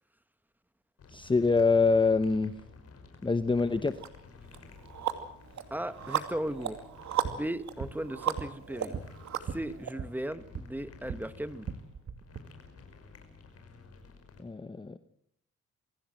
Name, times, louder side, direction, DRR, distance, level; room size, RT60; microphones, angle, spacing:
sound 1, 1.0-14.4, left 4 dB, 55° left, 5.9 m, -53 dB
voice 1, 1.1-2.5 3.2-4.0 14.4-15.0, left 4 dB, 15° left, 11 dB, 0.9 m, -25 dB
sound 2, 4.0-4.1 4.5-9.9, right 9 dB, 65° right, 2.5 m, -35 dB
voice 2, 5.7-6.8 7.3-9.0 9.5-11.7, right 1 dB, 5° right, 13 dB, 1.3 m, -36 dB
sound 3, 7.2-11.3 11.6-12.4, right 6 dB, 45° right, 1.9 m, -41 dB
24.0 x 16.5 x 7.7 m, 0.72 s
cardioid pair, 90°, 30 cm